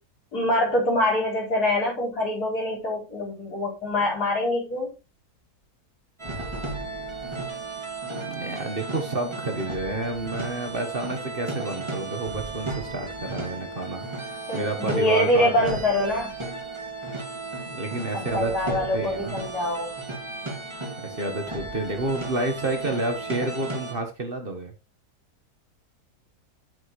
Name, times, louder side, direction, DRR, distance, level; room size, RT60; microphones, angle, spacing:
voice 1, 0.3-4.9 14.5-16.3 18.1-19.9, left 1 dB, 75° left, -4 dB, 5.3 m, -24 dB
sound 1, 6.2-23.9, right 3 dB, 20° right, 2.3 m, -34 dB
voice 2, 8.2-15.8 17.7-19.3 21.0-24.7, right 2 dB, 35° right, 4 dB, 1.5 m, -30 dB
9.1 x 8.4 x 3.1 m, 0.28 s
omnidirectional pair, 1.7 m